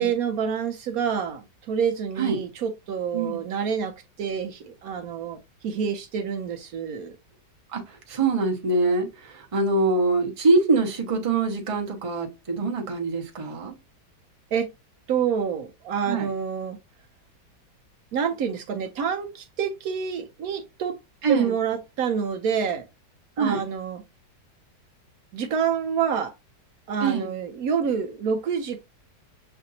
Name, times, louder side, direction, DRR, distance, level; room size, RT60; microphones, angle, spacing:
voice 1, 0.0-5.4 5.6-7.2 14.5-14.7 15.1-16.8 18.1-21.0 21.3-22.9 23.4-24.0 25.3-26.3 26.9-28.8, right 7 dB, 70° right, 0.9 m, -27 dB
voice 2, 7.7-13.7 16.0-16.3 21.2-21.5 23.4-23.6 27.0-27.3, right 3 dB, 30° right, 0.7 m, -24 dB
6.5 x 2.5 x 2.7 m
omnidirectional pair, 1.9 m